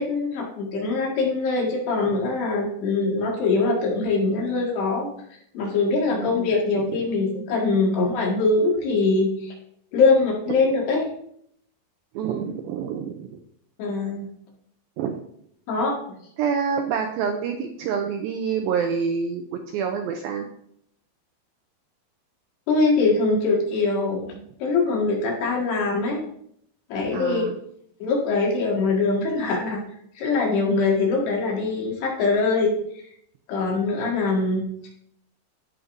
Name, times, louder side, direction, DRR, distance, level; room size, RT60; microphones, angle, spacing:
voice 1, 0.0-5.1 5.5-9.5 9.9-11.1 13.8-14.3 15.7-16.0 22.7-26.2 26.9-27.4 28.0-29.8 30.2-32.7 33.5-34.9, left 3 dB, 75° left, -2 dB, 3.9 m, -23 dB
voice 2, 6.1-6.5 12.2-13.4 15.0-15.2 16.4-19.4 19.7-20.4 27.1-27.6, right 6 dB, 85° right, 4 dB, 2.1 m, -27 dB
14.5 x 5.2 x 2.6 m, 0.69 s
omnidirectional pair, 4.8 m